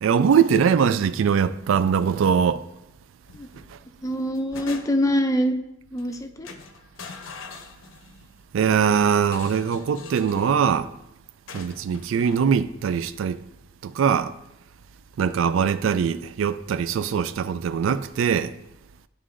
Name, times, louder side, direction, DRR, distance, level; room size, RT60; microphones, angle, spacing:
voice 1, 0.0-2.6 3.7-3.8 8.5-10.9 11.5-13.4 13.8-14.3 15.2-18.5, right 7 dB, 75° right, 0.3 m, -22 dB
sound 1, 3.3-3.7 4.1-5.2 6.0-6.2 6.4-8.3 9.2-10.6 11.5-12.5, left 4 dB, 80° left, 0.6 m, -42 dB
voice 2, 4.0-5.5 5.9-6.5, equal, 15° left, 0.4 m, -24 dB
11.0 x 3.7 x 2.5 m
head